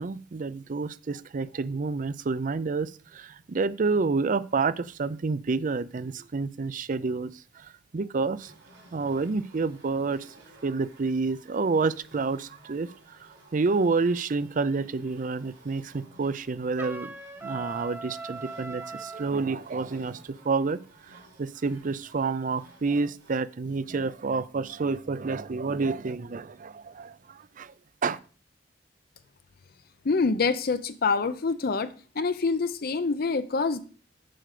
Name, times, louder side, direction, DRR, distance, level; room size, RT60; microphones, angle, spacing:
voice 1, 0.0-8.5 8.9-10.3 10.6-17.1 17.4-20.8 21.1-27.7 28.0-28.2, right 4 dB, 45° right, 16 dB, 0.5 m, -29 dB
sound 1, 8.4-23.5, right 2 dB, 90° right, 3.7 m, -56 dB
Trumpet, 16.8-19.3, right 3 dB, 10° right, 0.7 m, -39 dB
voice 2, 30.0-33.8, left 4 dB, 55° left, 12 dB, 0.6 m, -26 dB
7.7 x 5.1 x 6.7 m, 0.40 s
head